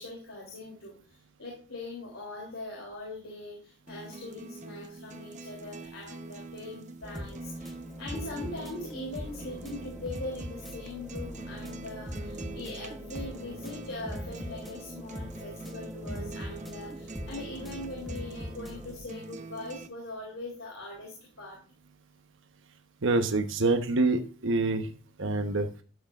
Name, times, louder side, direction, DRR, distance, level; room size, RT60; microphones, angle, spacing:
voice 1, 0.0-7.7 8.0-21.6, left 2 dB, 75° left, -1 dB, 3.3 m, -41 dB
sound 1, 3.9-19.9, right 2 dB, 35° right, 0.8 m, -44 dB
sound 2, 7.0-19.0, equal, ahead, 0.8 m, -42 dB
voice 2, 23.0-24.9 25.2-25.7, right 2 dB, 65° right, 6 dB, 1.0 m, -26 dB
13.0 x 8.0 x 2.5 m, 0.38 s
head